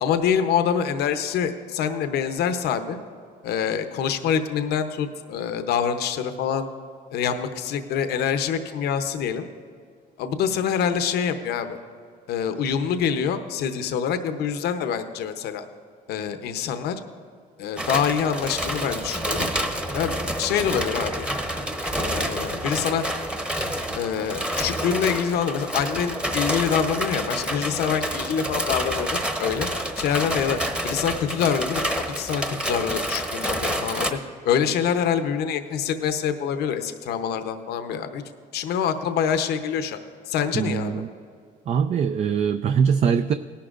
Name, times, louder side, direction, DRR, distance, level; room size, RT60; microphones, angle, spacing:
voice 1, 0.0-3.0 3.4-6.7 7.1-9.5 10.2-11.8 12.3-15.7 16.1-17.0 17.6-19.5 19.9-21.4 22.0-23.0 23.9-29.7 30.0-30.6 30.8-34.2 34.4-38.2 38.5-40.0 40.3-41.0, left 7 dB, 75° left, 9 dB, 0.8 m, -25 dB
sound 1, 17.8-34.1, equal, 5° right, 1.0 m, -28 dB
voice 2, 40.5-41.1 41.7-43.3, right 7 dB, 40° right, 9 dB, 0.4 m, -22 dB
18.5 x 11.5 x 2.5 m, 2.3 s
cardioid pair, 110°, 17 cm